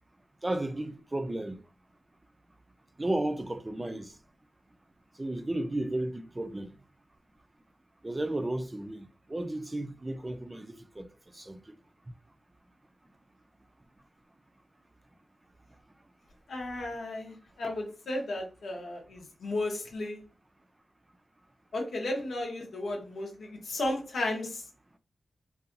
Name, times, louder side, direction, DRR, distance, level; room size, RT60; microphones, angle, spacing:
voice 1, 0.4-1.6 3.0-4.1 5.2-6.7 8.0-11.8, right 1 dB, 25° right, 0.3 m, -34 dB
voice 2, 16.5-20.2 21.7-24.6, left 2 dB, 80° left, 0.8 m, -34 dB
2.7 x 2.3 x 2.5 m
cardioid pair, 50°, 0 cm